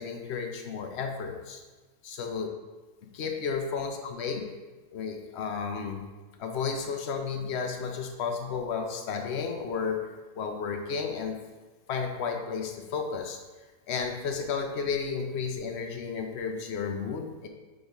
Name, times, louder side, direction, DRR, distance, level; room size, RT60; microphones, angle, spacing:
voice 1, 0.0-1.6 2.0-2.5 3.1-4.4 4.9-6.0 6.4-10.0 10.3-11.4 11.9-13.4 13.9-17.5, left 5 dB, 55° left, 4 dB, 0.8 m, -32 dB
8.5 x 4.0 x 3.0 m, 1.3 s
omnidirectional pair, 1.6 m